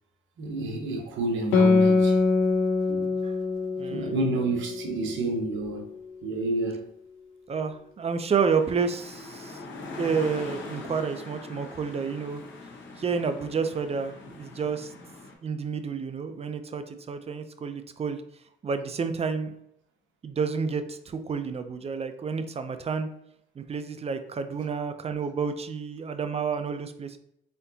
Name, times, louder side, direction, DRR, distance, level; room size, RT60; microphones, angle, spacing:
voice 1, 0.4-2.2 2.9-3.1 3.9-5.9 6.2-6.9, right 2 dB, 75° right, 1.1 m, -29 dB
Guitar, 1.5-6.5, left 4 dB, 85° left, 0.6 m, -25 dB
voice 2, 3.8-4.1 7.5-9.6 10.0-12.4 13.0-14.9 15.4-18.2 18.6-19.5 20.2-23.1 23.6-27.2, right 5 dB, 30° right, 0.5 m, -30 dB
sound 1, 8.5-15.3, left 3 dB, 70° left, 0.9 m, -42 dB
4.2 x 3.8 x 2.8 m
cardioid pair, 90°, 20 cm